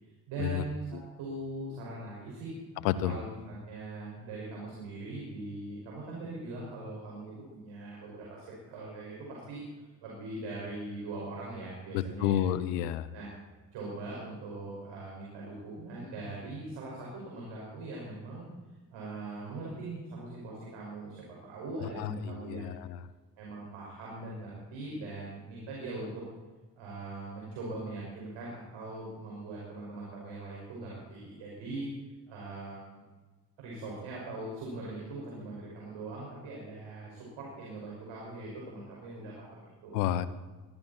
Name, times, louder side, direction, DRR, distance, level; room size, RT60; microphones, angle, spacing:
voice 1, 0.3-2.6 3.0-12.4 13.1-13.3 13.7-18.5 18.9-22.8 23.4-26.2 26.7-31.9 32.3-33.0 33.6-40.0, right 2 dB, 70° right, -4 dB, 5.8 m, -41 dB
voice 2, 2.8-3.2 11.9-13.1 22.0-23.0 39.9-40.3, left 11 dB, 85° left, 15 dB, 0.9 m, -30 dB
21.0 x 15.5 x 4.3 m, 1.3 s
hypercardioid pair, 50°, 48 cm